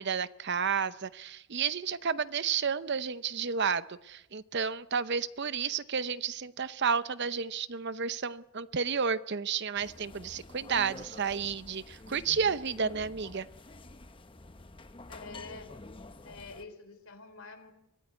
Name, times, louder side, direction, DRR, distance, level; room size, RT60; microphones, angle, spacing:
voice 1, 0.0-13.5, right 6 dB, 50° right, 15 dB, 0.7 m, -31 dB
sound 1, 9.8-16.7, left 2 dB, 25° left, 0.8 m, -48 dB
voice 2, 15.1-15.7 16.2-17.7, left 3 dB, 70° left, 8 dB, 3.6 m, -47 dB
23.5 x 15.0 x 9.6 m, 0.90 s
head